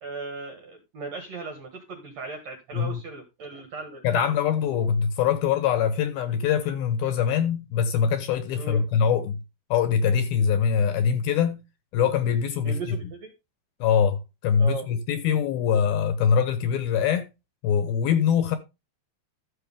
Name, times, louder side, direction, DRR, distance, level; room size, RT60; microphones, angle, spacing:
voice 1, 0.0-4.0 4.3-4.4 8.6-8.9 12.6-13.3 14.6-14.9, right 3 dB, 55° right, 2.1 m, -37 dB
voice 2, 4.0-9.4 9.7-11.6 11.9-12.8 13.8-17.3 17.6-18.6, left 7 dB, 70° left, 2.5 m, -23 dB
13.0 x 6.8 x 3.5 m
omnidirectional pair, 4.9 m